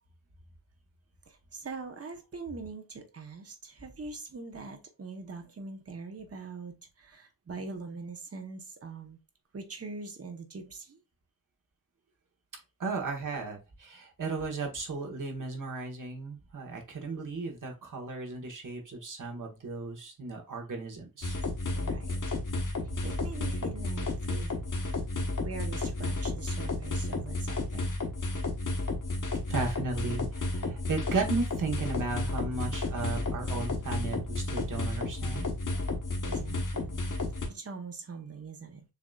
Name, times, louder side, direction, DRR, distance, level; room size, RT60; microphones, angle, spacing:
voice 1, 1.3-9.2 9.5-11.0 21.8-22.1 23.0-24.5 25.4-28.0 36.2-37.0 37.5-38.8, right 4 dB, 40° right, 1.0 m, -42 dB
voice 2, 12.8-21.4 22.9-23.0 29.5-35.5, right 3 dB, 60° right, 1.4 m, -35 dB
sound 1, 21.2-37.5, left 2 dB, 60° left, 1.1 m, -32 dB
6.8 x 2.7 x 2.3 m
wide cardioid pair, 110°, 36 cm